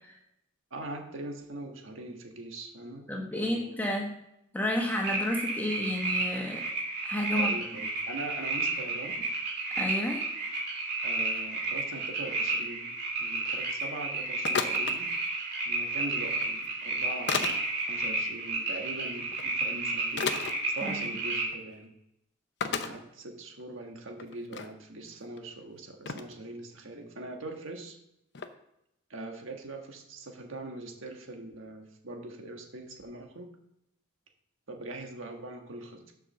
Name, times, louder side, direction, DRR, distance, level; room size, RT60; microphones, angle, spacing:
voice 1, 0.7-3.1 3.3-3.7 7.3-9.3 11.0-15.1 15.6-20.3 20.7-21.9 22.6-28.0 29.1-33.5 34.7-36.1, right 2 dB, 70° right, 3 dB, 1.5 m, -42 dB
voice 2, 3.1-4.1 4.5-6.6 7.0-7.5 9.8-10.2 20.8-21.1, left 1 dB, 10° left, 0 dB, 1.2 m, -31 dB
sound 1, 5.0-21.5, right 3 dB, 50° right, 2.4 m, -32 dB
sound 2, 14.4-15.0 16.3-16.5 17.3-17.6 19.3-19.4 20.2-20.5 21.4-21.6 21.8-21.9 22.6-22.9 23.6-23.7 24.1-24.7 25.4-25.5 26.1-26.3 28.3-28.5, left 6 dB, 55° left, 0.6 m, -31 dB
7.4 x 5.3 x 6.5 m, 0.82 s
head